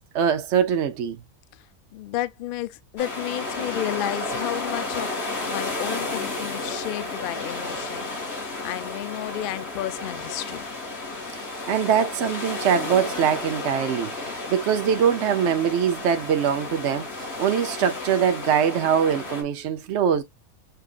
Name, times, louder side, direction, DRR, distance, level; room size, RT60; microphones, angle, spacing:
voice 1, 0.1-1.2 11.3-20.2, right 8 dB, 60° right, 0.9 m, -23 dB
voice 2, 1.9-5.1 5.5-10.7, left 13 dB, 80° left, 0.4 m, -32 dB
sound 1, 3.0-19.4, left 2 dB, 45° left, 1.9 m, -32 dB
6.7 x 2.5 x 2.4 m
omnidirectional pair, 1.5 m